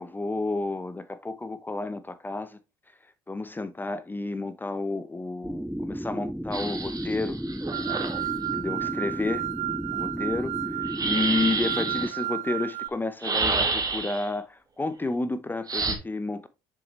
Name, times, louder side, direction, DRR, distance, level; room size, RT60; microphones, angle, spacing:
voice 1, 0.0-2.6 3.3-7.4 8.5-9.5 9.9-10.6 11.0-16.5, left 3 dB, 15° left, 0.9 m, -31 dB
sound 1, 5.4-12.1, equal, ahead, 0.5 m, -34 dB
sound 2, 6.5-8.3 10.8-12.1 13.2-14.3 15.7-15.9, right 3 dB, 30° right, 1.9 m, -29 dB
sound 3, 7.7-12.9, right 15 dB, 65° right, 0.7 m, -32 dB
6.9 x 6.1 x 3.2 m
hypercardioid pair, 65°, 12 cm